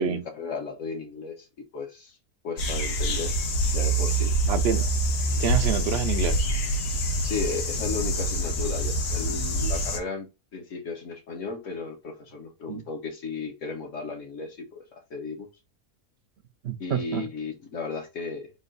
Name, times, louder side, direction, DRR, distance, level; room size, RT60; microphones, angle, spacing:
voice 1, 0.0-2.2 2.4-3.3 3.7-4.3 7.2-15.5 16.8-18.5, left 4 dB, 60° left, 1.2 m, -35 dB
sound 1, 2.6-10.0, right 1 dB, 75° left, 1.3 m, -26 dB
voice 2, 4.5-4.8 5.4-6.3 12.7-12.8 16.6-17.3, right 8 dB, 65° right, 0.6 m, -27 dB
3.8 x 2.4 x 3.9 m
omnidirectional pair, 1.6 m